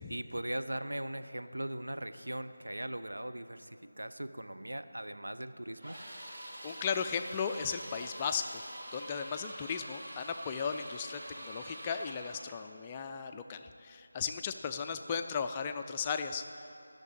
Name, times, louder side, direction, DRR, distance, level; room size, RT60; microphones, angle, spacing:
voice 1, 0.0-6.0, right 1 dB, 75° right, 9 dB, 0.6 m, -39 dB
sound 1, 5.8-12.5, right 1 dB, 40° right, 2.0 m, -46 dB
voice 2, 6.6-8.6 8.9-16.4, left 6 dB, 15° left, 6 dB, 0.3 m, -36 dB
12.0 x 6.5 x 8.4 m, 2.7 s
figure-of-eight pair, 165°, 0 cm